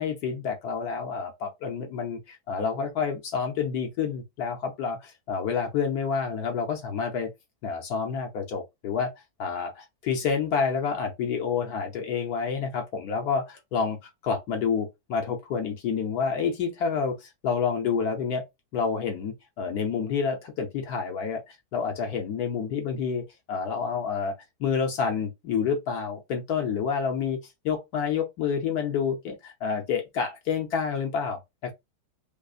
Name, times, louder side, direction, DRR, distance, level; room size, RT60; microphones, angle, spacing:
voice 1, 0.0-7.3 7.6-9.1 9.4-14.0 14.2-18.4 18.7-21.4 21.7-24.3 24.6-27.4 27.6-31.7, left 6 dB, 70° left, 1.2 m, -28 dB
5.1 x 2.0 x 2.4 m
omnidirectional pair, 1.8 m